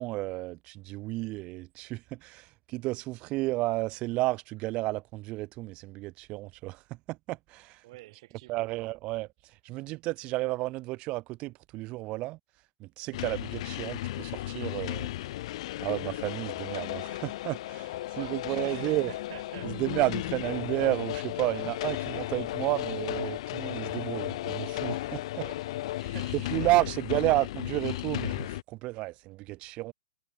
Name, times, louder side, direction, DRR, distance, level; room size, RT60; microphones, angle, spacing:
voice 1, 0.0-6.8 7.1-7.8 8.5-9.3 9.6-12.4 12.8-15.1 15.8-19.1 19.8-25.2 26.5-26.8 27.1-29.9, right 20 dB, 25° right, 0.7 m, -32 dB
voice 2, 7.8-8.7 18.1-19.7 25.3-27.4, right 19 dB, 40° right, 7.0 m, -48 dB
sound 1, 13.1-28.6, left 15 dB, 45° left, 2.1 m, -35 dB
hypercardioid pair, 150°, 4 cm